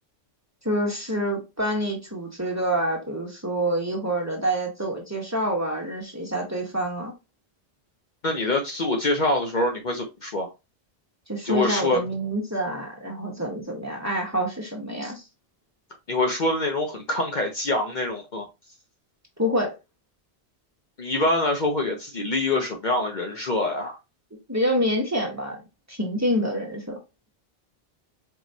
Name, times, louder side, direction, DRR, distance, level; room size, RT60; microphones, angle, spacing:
voice 1, 0.6-7.1 11.3-15.2 19.4-19.8 24.5-25.6 25.9-27.0, equal, 15° right, 1.1 m, -27 dB
voice 2, 8.2-10.5 11.4-12.0 16.1-18.5 21.0-24.0, left 2 dB, 50° left, 0.8 m, -25 dB
4.6 x 3.0 x 2.6 m
omnidirectional pair, 1.1 m